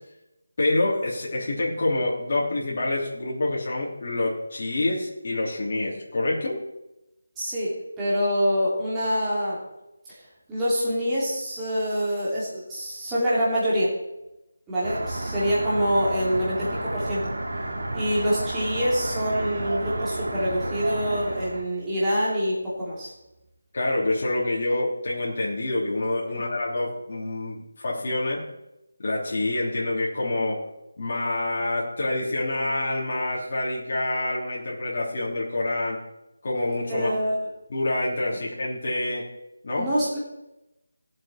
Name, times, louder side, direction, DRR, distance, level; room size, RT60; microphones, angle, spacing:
voice 1, 0.6-6.6 23.7-28.4 29.0-30.6 31.0-36.0 36.4-37.1 37.7-39.2 39.6-39.9, left 2 dB, 40° left, -5 dB, 3.1 m, -27 dB
voice 2, 7.4-9.6 10.5-13.9 14.7-17.3 17.9-23.1 36.9-37.4 39.8-40.2, equal, 10° right, -10 dB, 2.9 m, -25 dB
sound 1, 14.8-21.6, right 1 dB, 70° right, 2.7 m, -31 dB
18.0 x 7.8 x 4.3 m, 0.92 s
figure-of-eight pair, 170°, 0 cm